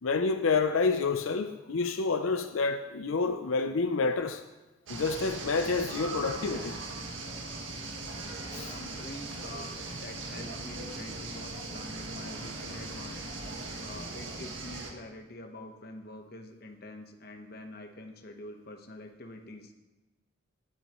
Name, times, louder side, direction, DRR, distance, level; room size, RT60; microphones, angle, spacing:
voice 1, 0.0-4.4 4.9-6.8 8.5-8.7, left 4 dB, 90° left, 8 dB, 0.6 m, -28 dB
sound 1, 4.9-14.9, right 2 dB, 75° right, 1.7 m, -39 dB
voice 2, 8.6-13.2 13.8-19.7, left 1 dB, 50° left, 5 dB, 1.1 m, -46 dB
19.5 x 8.4 x 3.1 m, 1.1 s
head